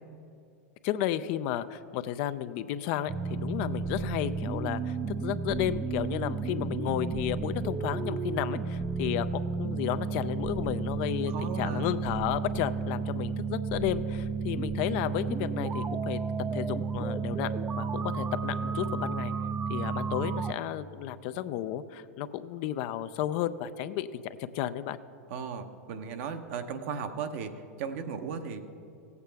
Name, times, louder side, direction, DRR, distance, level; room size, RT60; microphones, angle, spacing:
voice 1, 0.8-5.0 5.2-11.3 11.6-16.2 16.5-19.3 19.7-25.0, left 12 dB, 55° left, 13 dB, 0.5 m, -33 dB
sound 1, 3.1-20.5, right 5 dB, 20° right, 0.4 m, -32 dB
voice 2, 10.9-11.9 25.3-28.6, right 6 dB, 60° right, 7 dB, 0.9 m, -36 dB
16.5 x 8.2 x 3.4 m, 2.5 s
hypercardioid pair, 100°, 8 cm